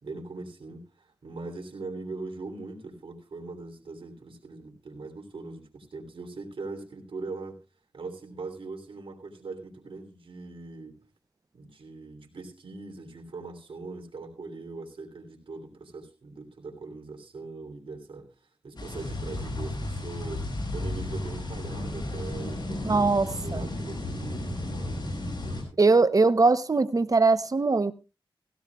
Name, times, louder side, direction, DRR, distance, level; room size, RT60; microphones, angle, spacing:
voice 1, 0.0-7.6 7.9-11.0 11.5-18.3 18.6-23.1 23.4-25.9, right 3 dB, 75° right, 3.1 m, -41 dB
sound 1, 18.8-25.6, left 1 dB, 55° left, 6.1 m, -33 dB
voice 2, 22.8-23.7 25.8-27.9, right 3 dB, 40° right, 0.8 m, -21 dB
17.5 x 16.0 x 2.3 m
wide cardioid pair, 65°, 9 cm